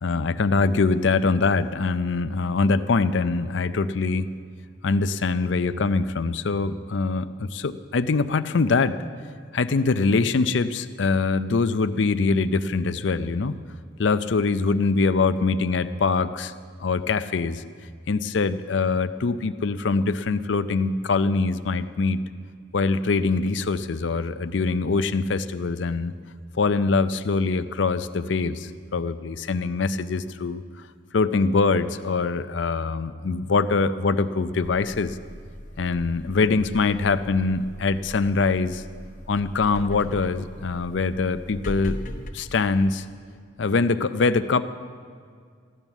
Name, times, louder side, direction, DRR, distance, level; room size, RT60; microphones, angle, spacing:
voice 1, 0.0-4.3 4.8-9.0 9.5-13.6 14.0-16.5 16.8-17.6 18.1-22.2 22.7-26.1 26.6-30.6 31.1-35.2 35.8-38.8 39.3-42.0 42.3-43.0 43.6-44.6, left 4 dB, 65° left, 12 dB, 0.5 m, -23 dB
sound 1, 34.6-42.3, left 1 dB, 40° left, 1.1 m, -39 dB
15.0 x 11.0 x 7.1 m, 2.1 s
head